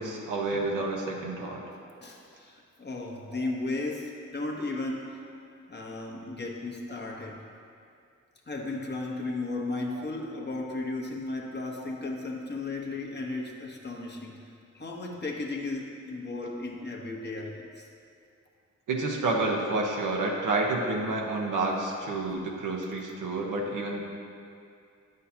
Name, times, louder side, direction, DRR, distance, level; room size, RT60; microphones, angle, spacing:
voice 1, 0.0-1.6 3.3-3.4 9.9-10.0 11.8-11.9 18.9-24.0, right 2 dB, 80° right, -1 dB, 1.0 m, -29 dB
voice 2, 2.0-5.2 5.7-7.4 8.5-14.4 14.7-17.9, left 2 dB, 35° left, -1 dB, 1.1 m, -35 dB
9.2 x 6.4 x 2.8 m, 2.4 s
cardioid pair, 60°, 31 cm